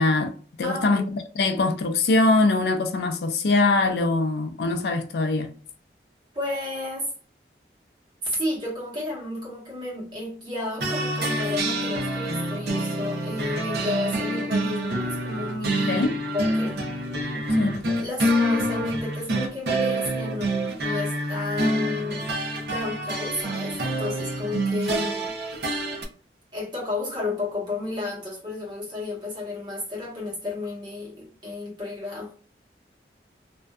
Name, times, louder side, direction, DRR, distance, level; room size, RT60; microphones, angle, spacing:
voice 1, 0.0-5.5 15.9-16.2 17.6-17.8, left 2 dB, 65° left, 0.4 m, -23 dB
voice 2, 0.6-1.0 6.3-7.1 8.2-16.1 16.3-16.8 17.1-17.2 17.5-17.6 18.0-22.3 22.7-25.3 26.5-32.3, left 2 dB, 25° right, 1.1 m, -32 dB
sound 1, 10.8-26.0, right 1 dB, 65° right, 0.6 m, -27 dB
2.5 x 2.2 x 2.3 m
head